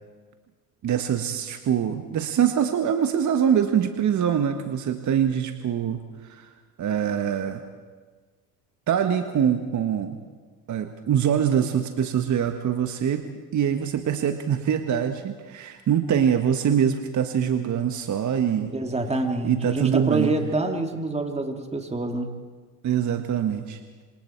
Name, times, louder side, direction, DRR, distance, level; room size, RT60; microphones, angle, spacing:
voice 1, 0.8-6.5 6.8-7.6 8.9-10.2 10.7-18.7 19.4-20.3 22.8-23.8, right 8 dB, 35° right, 7 dB, 1.5 m, -24 dB
voice 2, 18.7-22.3, right 2 dB, 15° right, 4 dB, 3.0 m, -26 dB
27.0 x 26.5 x 4.6 m, 1.4 s
hypercardioid pair, 85°, 50 cm